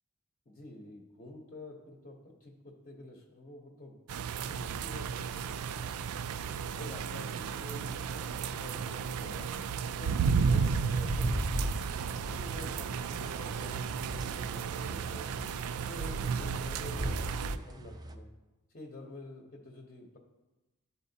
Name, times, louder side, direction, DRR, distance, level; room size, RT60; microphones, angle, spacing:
voice 1, 0.5-4.0 4.5-6.1 6.7-9.5 10.0-11.8 12.2-15.3 15.8-18.3 18.7-20.2, left 1 dB, 35° left, 0 dB, 0.8 m, -48 dB
sound 1, 4.1-17.6, right 6 dB, 90° right, 0.3 m, -33 dB
sound 2, 10.4-18.1, right 1 dB, 20° right, 0.4 m, -39 dB
12.0 x 4.1 x 2.7 m, 1.1 s
head